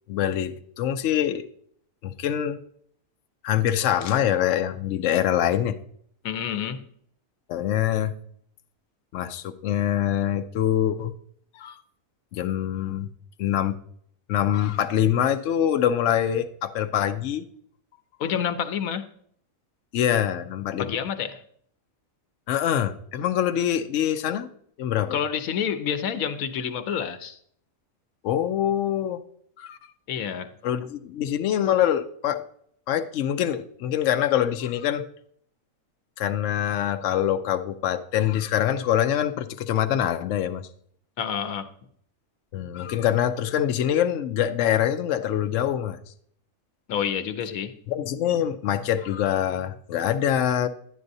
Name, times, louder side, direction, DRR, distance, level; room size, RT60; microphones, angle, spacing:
voice 1, 0.1-1.4 2.0-2.6 3.4-5.7 7.5-8.1 9.1-11.1 11.5-11.8 12.3-13.1 13.4-13.8 14.3-17.5 18.2-18.3 19.9-21.0 22.5-24.5 24.8-25.2 28.2-29.2 29.6-29.8 30.6-32.4 32.9-35.0 36.2-40.6 42.5-46.0 47.9-50.7, left 10 dB, 70° left, 0.9 m, -24 dB
voice 2, 6.2-6.9 18.2-19.1 20.8-21.4 25.1-27.4 30.1-30.5 41.2-41.7 46.9-47.8, left 8 dB, 90° left, 1.1 m, -28 dB
11.0 x 10.0 x 2.6 m
omnidirectional pair, 1.4 m